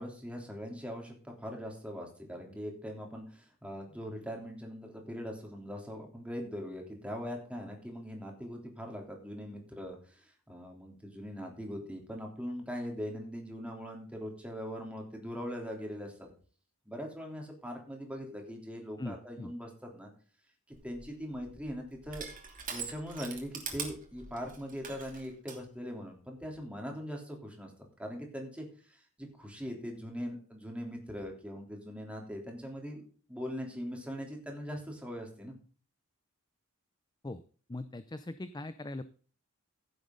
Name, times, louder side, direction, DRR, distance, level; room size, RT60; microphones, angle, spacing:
voice 1, 0.0-16.3 16.9-20.1 20.8-22.3 22.7-27.7 28.0-35.5, equal, 5° right, 1 dB, 3.3 m, -41 dB
voice 2, 19.0-19.5 37.2-37.4 37.7-39.0, left 2 dB, 20° left, 12 dB, 0.5 m, -40 dB
Crushing, 20.7-25.6, right 6 dB, 40° right, 2.9 m, -43 dB
15.5 x 7.8 x 3.9 m, 0.41 s
head